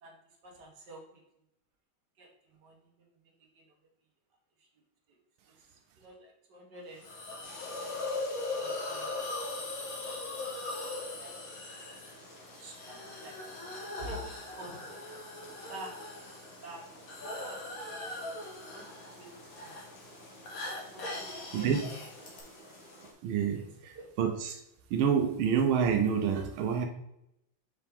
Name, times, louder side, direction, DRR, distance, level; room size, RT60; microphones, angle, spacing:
voice 1, 0.4-1.2 2.2-2.9 3.5-3.6 4.6-4.7 5.1-5.2 5.6-7.1 7.8-8.2 8.4-9.1 10.1-10.2 10.5-10.6 11.2-11.5 12.1-12.2 12.6-13.5 14.0-15.4 15.7-15.9 16.6-16.8 17.4-18.2 18.7-19.3 19.6-19.8 20.9-21.7 22.4-22.5 23.5-24.1, right 1 dB, 60° right, -1 dB, 1.9 m, -49 dB
Hiss, 7.0-22.4, left 2 dB, 50° left, 1.5 m, -40 dB
sound 1, 7.4-23.1, left 1 dB, 65° left, 2.3 m, -53 dB
voice 2, 21.5-21.9 23.2-24.6 24.9-26.9, right 7 dB, 90° right, 4 dB, 1.5 m, -28 dB
5.7 x 5.0 x 3.5 m, 0.82 s
omnidirectional pair, 2.3 m